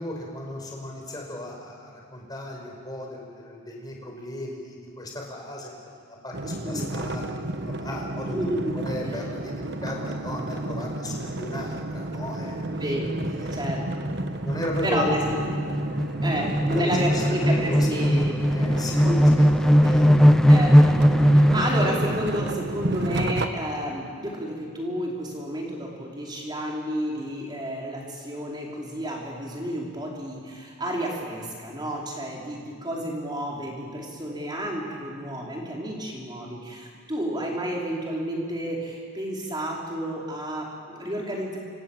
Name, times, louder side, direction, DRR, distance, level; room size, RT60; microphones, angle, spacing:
voice 1, 0.0-5.7 6.0-7.3 7.6-8.5 8.8-12.5 13.4-13.7 14.4-15.2 16.3-18.2 18.5-19.1 19.4-19.5 19.8-20.1, left 1 dB, 20° left, 0 dB, 5.3 m, -35 dB
sound 1, 6.3-23.5, right 2 dB, 50° right, 1.2 m, -31 dB
voice 2, 8.3-8.7 12.8-13.1 13.5-14.1 14.8-15.2 16.2-18.3 19.0-19.9 20.5-20.8 21.3-41.6, equal, 20° right, -2 dB, 5.0 m, -31 dB
sound 2, 11.5-11.8 12.2-12.3 12.5-22.2, equal, ahead, 0.6 m, -20 dB
29.5 x 26.5 x 7.6 m, 2.1 s
head